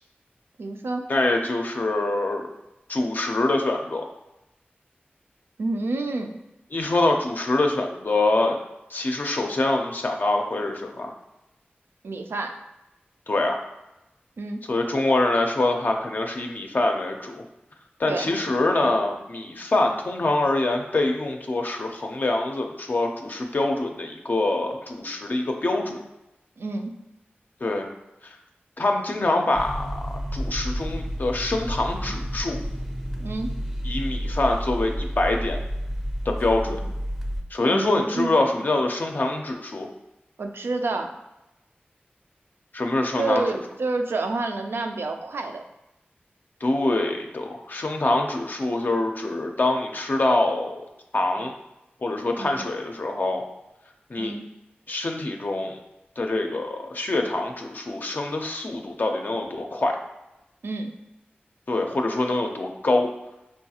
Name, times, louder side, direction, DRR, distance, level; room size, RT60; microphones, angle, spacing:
voice 1, 0.6-1.0 5.6-6.3 12.0-12.6 14.4-14.6 18.1-18.3 26.6-26.9 33.2-33.5 36.7-36.8 37.7-38.3 40.4-41.1 43.2-45.6 52.4-52.6 54.2-54.4 60.6-60.9, right 3 dB, 85° right, 5 dB, 0.3 m, -28 dB
voice 2, 1.1-2.5 2.9-4.0 6.7-8.6 8.9-11.1 13.3-13.6 14.7-17.4 18.0-26.0 27.6-27.9 28.2-28.4 28.8-30.0 30.3-32.6 33.8-35.6 36.3-36.8 37.5-39.9 42.7-43.4 46.6-50.8 51.1-51.5 52.0-53.4 54.1-54.4 54.9-55.8 56.2-60.0 61.7-63.1, left 2 dB, 50° left, 3 dB, 0.4 m, -25 dB
sound 1, 29.5-37.4, equal, 10° right, 0.5 m, -30 dB
4.3 x 2.3 x 2.8 m, 0.92 s
wide cardioid pair, 80°, 4 cm